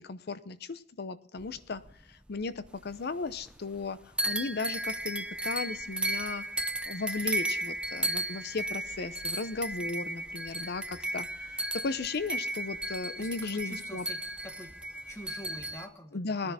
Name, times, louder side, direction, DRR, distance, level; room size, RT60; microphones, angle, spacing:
voice 1, 0.0-1.8 2.3-4.0 4.3-6.4 6.9-10.8 11.1-11.3 11.8-14.1 16.1-16.5, left 4 dB, 60° left, 14 dB, 0.7 m, -35 dB
sound 1, 1.4-2.9 3.2-3.9 4.2-15.9, right 1 dB, 5° right, 0.5 m, -35 dB
voice 2, 13.2-14.7 15.1-16.5, equal, 15° left, 6 dB, 1.4 m, -46 dB
19.0 x 10.5 x 4.1 m, 0.68 s
head